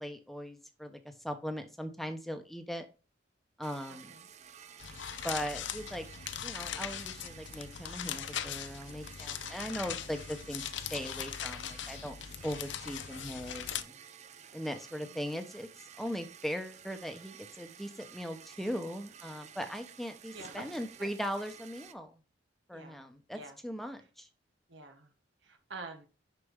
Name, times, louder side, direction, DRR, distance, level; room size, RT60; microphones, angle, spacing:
voice 1, 0.0-2.9 3.6-4.1 5.2-6.1 6.4-12.1 12.4-13.9 14.5-22.2 22.7-24.3, equal, ahead, 6 dB, 0.9 m, -39 dB
sound 1, 3.6-21.9, right 8 dB, 40° right, 0.5 m, -53 dB
voice 2, 3.9-4.3 10.0-10.1 14.9-15.2 20.3-20.7 21.0-21.1 22.7-23.0 23.3-23.6 24.7-25.1 25.4-26.1, right 3 dB, 80° right, 5 dB, 1.3 m, -48 dB
sound 2, 4.8-13.8, left 9 dB, 75° left, 0.6 m, -40 dB
6.5 x 5.9 x 3.7 m, 0.33 s
head